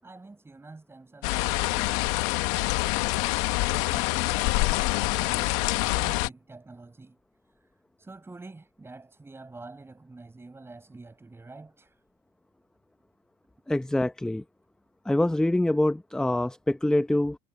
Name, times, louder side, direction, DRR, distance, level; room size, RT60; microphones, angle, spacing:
voice 1, 0.0-7.2 8.0-11.9, right 3 dB, 15° right, 5.0 m, -47 dB
sound 1, 1.2-6.3, left 21 dB, 80° left, 1.1 m, -26 dB
voice 2, 13.7-14.4 15.1-17.4, left 1 dB, 5° left, 0.7 m, -25 dB
supercardioid pair, 85°, 15 cm